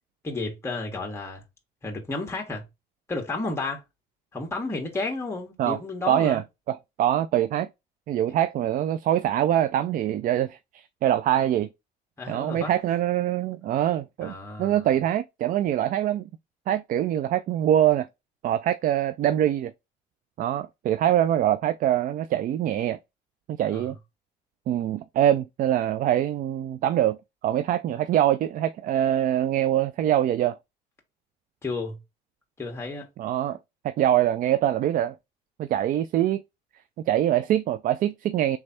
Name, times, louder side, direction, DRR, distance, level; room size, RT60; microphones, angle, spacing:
voice 1, 0.2-1.4 1.8-2.6 3.1-3.8 4.3-6.4 8.3-8.4 12.2-12.7 14.2-14.8 23.7-23.9 31.6-32.0 32.6-33.1, left 3 dB, 15° left, 1.5 m, -32 dB
voice 2, 6.1-7.7 8.1-11.7 12.3-16.2 16.7-18.1 18.4-19.7 20.4-23.0 23.5-24.0 24.7-27.2 27.4-30.6 33.2-33.6 33.8-35.1 35.6-36.4 37.1-38.6, right 11 dB, 55° right, 0.4 m, -24 dB
3.5 x 3.2 x 4.2 m
cardioid pair, 110°, 17 cm